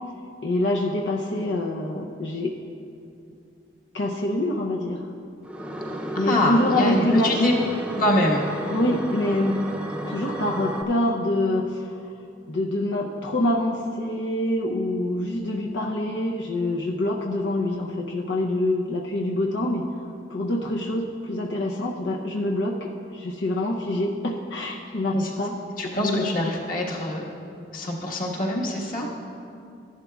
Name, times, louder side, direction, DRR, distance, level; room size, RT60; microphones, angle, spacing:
voice 1, 0.4-2.5 3.9-5.0 6.2-7.5 8.7-9.6 10.1-11.9 12.5-19.8 20.3-22.8 23.1-25.5 25.8-26.3, left 1 dB, 90° left, 0 dB, 0.7 m, -25 dB
sound 1, 5.4-10.8, right 1 dB, 5° right, 0.5 m, -32 dB
voice 2, 6.1-7.5 7.9-8.4 25.1-25.3 25.8-27.3 27.7-29.1, left 1 dB, 50° left, -3 dB, 1.5 m, -24 dB
14.0 x 11.0 x 2.3 m, 2.5 s
head